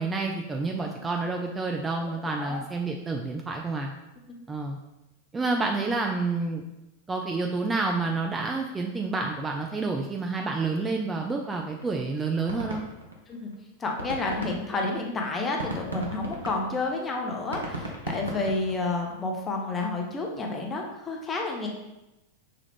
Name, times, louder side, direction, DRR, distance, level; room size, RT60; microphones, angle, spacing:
voice 1, 0.0-3.9 4.5-4.8 5.3-6.6 7.1-12.8, right 3 dB, 15° right, 1 dB, 0.3 m, -29 dB
sound 1, 11.5-11.6 11.8-11.9 12.2-13.5 13.8-19.1, right 1 dB, 80° right, 0.6 m, -36 dB
voice 2, 13.8-21.7, left 3 dB, 20° left, 1 dB, 0.7 m, -30 dB
5.7 x 2.4 x 3.3 m, 0.94 s
figure-of-eight pair, 90°, 0 cm